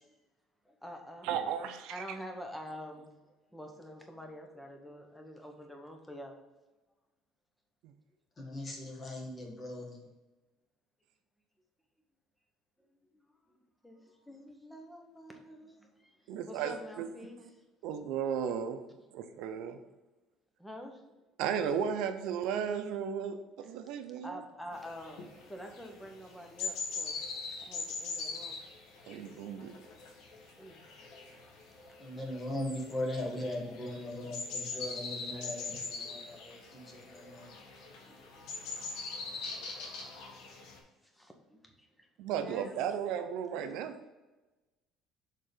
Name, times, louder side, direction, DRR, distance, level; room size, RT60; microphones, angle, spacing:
voice 1, 0.6-1.3 1.9-6.4 12.8-12.9 13.5-17.7 18.4-18.5 20.6-21.2 23.6-23.7 24.2-27.2 27.6-28.6 30.6-31.6 31.9-32.1 38.1-38.8 40.0-40.2 41.0-42.1 42.3-42.8, equal, 5° left, 3 dB, 1.0 m, -48 dB
voice 2, 1.2-1.9 16.3-17.1 17.8-18.8 19.1-19.8 21.4-24.3 29.1-29.7 42.2-44.0, right 8 dB, 75° right, 8 dB, 0.6 m, -34 dB
voice 3, 8.4-10.1 32.0-37.5, left 1 dB, 30° left, 0 dB, 1.7 m, -39 dB
sound 1, 24.7-40.8, left 4 dB, 80° left, 1.5 m, -42 dB
6.7 x 3.7 x 5.0 m, 1.1 s
cardioid pair, 140°, 0 cm